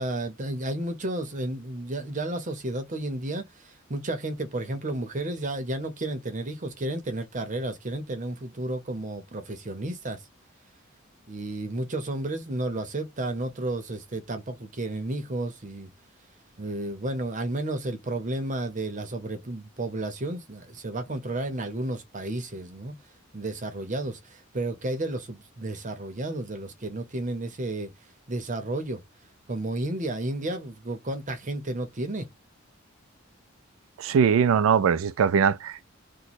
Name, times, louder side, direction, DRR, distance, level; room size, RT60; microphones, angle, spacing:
voice 1, 0.0-10.2 11.3-15.9 16.6-22.9 23.3-27.9 28.3-29.0 29.5-32.3, right 2 dB, 40° right, 0.8 m, -32 dB
voice 2, 34.0-35.9, right 7 dB, 75° right, 0.3 m, -21 dB
3.0 x 2.2 x 4.1 m
head